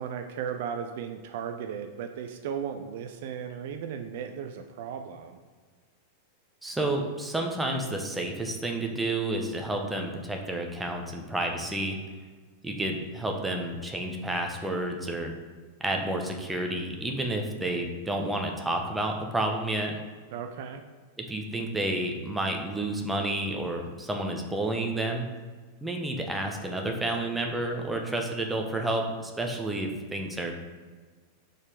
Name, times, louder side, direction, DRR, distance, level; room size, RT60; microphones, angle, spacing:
voice 1, 0.0-5.4 20.3-20.8, right 7 dB, 55° right, 6 dB, 0.4 m, -36 dB
voice 2, 6.6-12.0 12.6-15.3 15.8-19.9 21.2-25.3 25.8-30.5, right 1 dB, 10° right, 2 dB, 0.9 m, -30 dB
4.9 x 4.2 x 5.0 m, 1.5 s
figure-of-eight pair, 90°, 0 cm